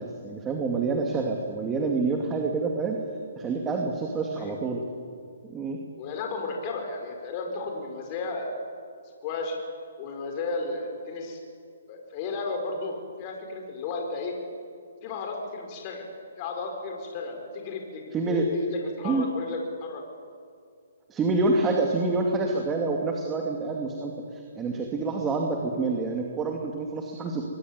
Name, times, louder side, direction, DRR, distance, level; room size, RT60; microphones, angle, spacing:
voice 1, 0.0-3.0 3.4-4.8 5.5-5.8 18.1-18.5 19.0-19.2 21.1-27.4, right 3 dB, 15° right, 1 dB, 2.5 m, -27 dB
voice 2, 6.0-8.6 9.2-9.6 10.0-11.4 11.9-14.3 15.0-16.1 16.4-20.0, left 3 dB, 30° left, 2 dB, 5.0 m, -34 dB
23.5 x 22.0 x 9.7 m, 2.3 s
hypercardioid pair, 150°, 0 cm